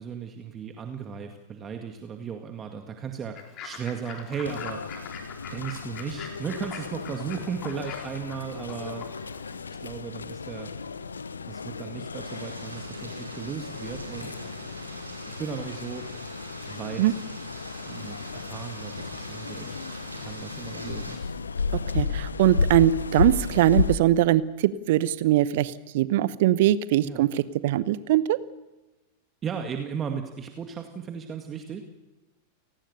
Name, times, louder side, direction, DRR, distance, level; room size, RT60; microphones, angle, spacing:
voice 1, 0.0-4.8 5.5-9.1 9.7-10.7 11.5-14.3 15.4-16.1 16.7-17.2 17.9-19.8 20.2-21.2 27.0-27.3 29.4-31.8, right 7 dB, 25° right, 4 dB, 2.2 m, -36 dB
Fowl / Bird, 3.4-9.6, left 6 dB, 35° left, 4.3 m, -43 dB
sound 1, 4.4-23.9, left 5 dB, 75° left, 1.0 m, -33 dB
sound 2, 12.2-21.2, right 1 dB, 85° right, 5.2 m, -43 dB
voice 2, 21.9-28.4, right 13 dB, 55° right, 17 dB, 1.0 m, -22 dB
29.5 x 19.0 x 6.8 m, 1.1 s
figure-of-eight pair, 90°, 0 cm